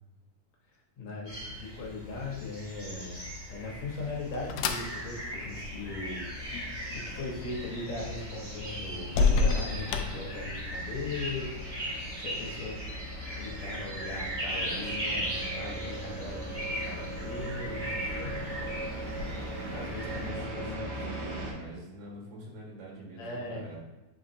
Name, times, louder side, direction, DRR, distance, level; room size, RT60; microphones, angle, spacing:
voice 1, 1.0-6.2 6.9-11.5 12.2-12.8 13.4-18.4 19.7-21.1 23.2-23.7, left 2 dB, 65° left, -3 dB, 2.2 m, -39 dB
sound 1, 1.3-20.3, equal, 20° right, 1.3 m, -38 dB
sound 2, 3.6-10.9, left 4 dB, 85° left, 1.5 m, -32 dB
sound 3, 5.7-21.5, right 1 dB, 60° right, 2.5 m, -41 dB
voice 2, 14.5-15.2 20.0-23.8, right 1 dB, 80° right, -3 dB, 3.2 m, -45 dB
7.6 x 4.7 x 2.7 m, 1.1 s
omnidirectional pair, 3.7 m